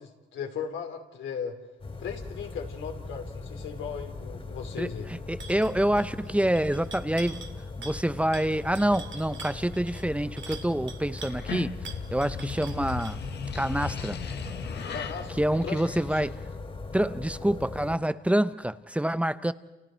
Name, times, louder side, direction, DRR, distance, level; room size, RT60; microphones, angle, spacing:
voice 1, 0.0-1.5 2.0-5.1 14.9-15.8 16.1-16.2, left 6 dB, 75° left, 3.4 m, -37 dB
sound 1, 1.8-18.0, left 3 dB, 30° left, 3.1 m, -40 dB
voice 2, 4.8-7.5 7.8-13.2 13.5-14.2 15.4-16.3 16.9-19.5, right 1 dB, 5° right, 0.8 m, -27 dB
sound 2, 5.4-5.7 6.0-6.3 6.5-7.5 7.8-8.1 8.3-11.4 11.8-13.2, right 4 dB, 65° right, 2.4 m, -44 dB
sound 3, 11.3-16.5, left 6 dB, 60° left, 1.5 m, -37 dB
30.0 x 29.0 x 4.6 m
cardioid pair, 90°, 20 cm